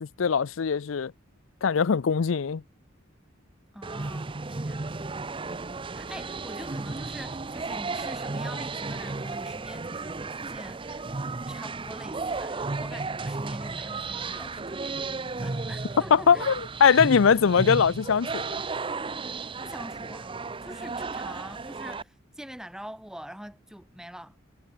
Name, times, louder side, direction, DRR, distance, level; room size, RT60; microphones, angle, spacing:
voice 1, 0.0-1.1 1.6-2.6 16.1-18.6, left 6 dB, 80° left, 0.5 m, -21 dB
voice 2, 3.7-5.0 5.9-11.2 11.5-16.5 19.6-24.3, equal, 5° right, 3.0 m, -44 dB
sound 1, 3.8-22.0, right 3 dB, 25° right, 0.6 m, -34 dB
head